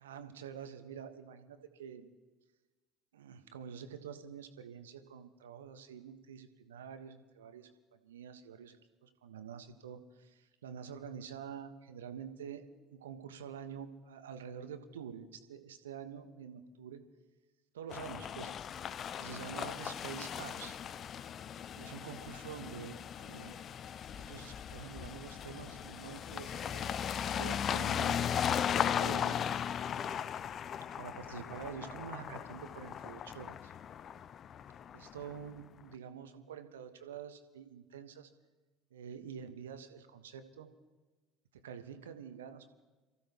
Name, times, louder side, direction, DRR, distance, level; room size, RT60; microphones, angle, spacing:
voice 1, 0.0-2.1 3.1-8.8 9.0-12.6 12.9-17.0 17.7-18.5 19.1-20.8 21.7-23.6 24.2-26.9 27.2-29.4 31.0-33.7 34.9-38.3 38.9-40.7 41.5-42.8, right 8 dB, 75° right, 8 dB, 1.3 m, -47 dB
sound 1, 17.9-35.5, left 9 dB, 40° left, 0.5 m, -37 dB
28.0 x 15.0 x 3.0 m, 1.2 s
figure-of-eight pair, 60°, 0 cm